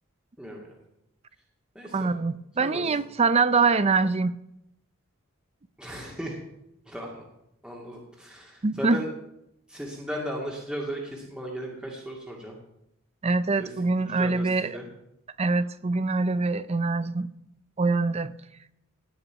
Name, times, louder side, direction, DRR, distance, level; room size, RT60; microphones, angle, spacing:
voice 1, 0.4-0.8 1.7-2.1 2.6-2.9 5.8-6.4 6.9-7.2 7.6-9.1 9.7-12.6 13.6-13.7 14.1-14.8, equal, 5° right, -2 dB, 2.2 m, -36 dB
voice 2, 1.9-4.4 8.6-9.0 13.2-14.8 15.4-17.3 17.8-18.3, right 4 dB, 30° right, 15 dB, 0.5 m, -24 dB
17.5 x 5.9 x 9.2 m, 0.83 s
head